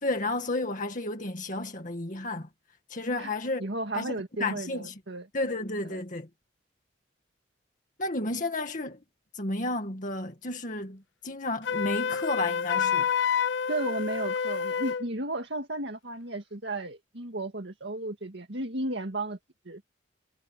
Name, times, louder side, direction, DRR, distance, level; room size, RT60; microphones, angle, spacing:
voice 1, 0.0-2.5 2.9-3.7 3.9-4.9 5.3-6.3 8.0-9.0 9.3-13.1, left 2 dB, 45° left, 2.1 m, -32 dB
voice 2, 3.6-5.3 5.8-6.0 13.7-19.4 19.7-19.8, right 2 dB, 65° right, 2.0 m, -34 dB
Wind instrument woodwind instrument, 11.6-15.1, left 7 dB, 65° left, 0.6 m, -28 dB
head